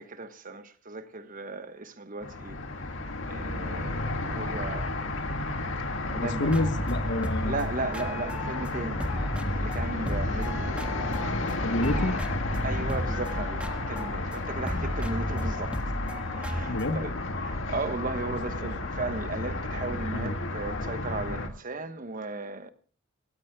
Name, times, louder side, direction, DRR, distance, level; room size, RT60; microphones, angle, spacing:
voice 1, 0.0-2.6 2.9-3.0 3.3-5.2 6.0-6.5 7.4-9.0 9.3-11.7 12.6-15.8 16.4-17.1 17.4-22.7, right 3 dB, 45° right, 1.1 m, -36 dB
sound 1, 2.2-21.5, left 2 dB, 85° left, 1.9 m, -32 dB
voice 2, 6.1-7.6 11.6-12.2 14.7-14.9 16.7-17.0 18.6-18.7 20.1-20.4, left 1 dB, 65° left, 1.2 m, -29 dB
sound 2, 6.5-8.7 9.0-11.5 11.8-17.0, equal, 5° right, 1.6 m, -34 dB
24.0 x 18.0 x 2.3 m
head